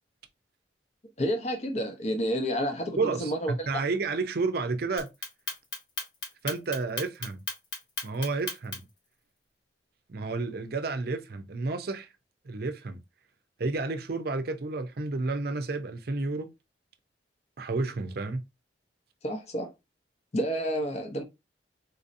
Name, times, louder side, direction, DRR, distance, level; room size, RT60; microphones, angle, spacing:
voice 1, 1.2-3.7 19.2-19.7 20.3-21.2, equal, 35° left, 0.7 m, -30 dB
voice 2, 3.0-5.1 6.4-7.4 8.0-8.9 10.1-12.1 12.4-13.0 13.6-16.5 17.6-18.4, right 3 dB, 55° right, 0.6 m, -31 dB
Clock, 5.0-9.0, left 4 dB, 70° left, 1.4 m, -35 dB
4.0 x 2.7 x 2.5 m
head